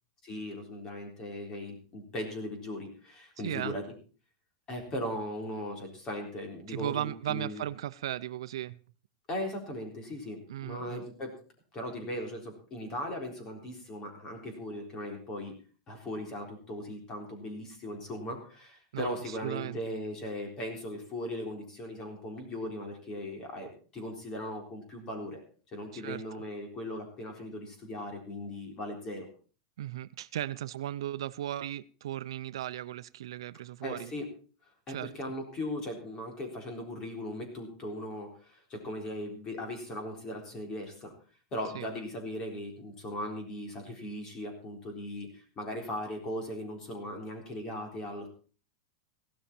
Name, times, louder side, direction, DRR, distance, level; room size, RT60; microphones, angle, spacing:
voice 1, 0.2-3.8 4.7-7.6 9.3-11.3 11.7-15.5 15.9-25.4 25.7-29.3 33.8-34.3 34.9-41.1 41.5-48.3, left 1 dB, 20° left, 3 dB, 3.9 m, -38 dB
voice 2, 3.4-3.8 6.7-8.8 10.5-11.0 18.9-19.8 25.9-26.2 29.8-34.1 34.9-35.3 41.7-41.9, right 12 dB, 85° right, 15 dB, 0.7 m, -36 dB
16.0 x 12.5 x 4.4 m, 0.39 s
supercardioid pair, 170°, 3 cm